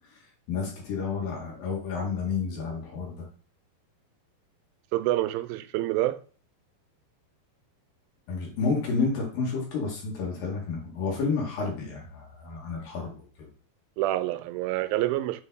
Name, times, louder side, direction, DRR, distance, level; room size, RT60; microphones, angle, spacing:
voice 1, 0.5-3.3 8.3-13.1 13.4-13.5, left 4 dB, 70° left, 3.6 m, -30 dB
voice 2, 4.9-6.2 14.0-15.4, right 15 dB, 80° right, 2.3 m, -27 dB
8.7 x 3.8 x 3.9 m
omnidirectional pair, 4.3 m